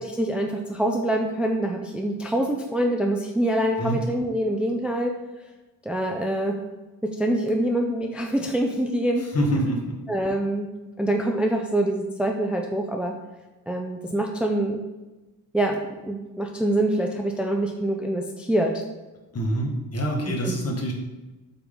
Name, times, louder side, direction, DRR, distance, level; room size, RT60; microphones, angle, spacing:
voice 1, 0.0-5.1 5.9-6.6 7.2-9.2 10.1-10.7 11.0-13.1 13.7-14.8 15.5-18.7 20.3-20.7, right 1 dB, 5° right, 2 dB, 0.4 m, -25 dB
voice 2, 9.2-10.0 19.3-20.9, right 1 dB, 40° left, 0 dB, 1.6 m, -26 dB
8.0 x 5.9 x 3.8 m, 1.1 s
wide cardioid pair, 165°, 38 cm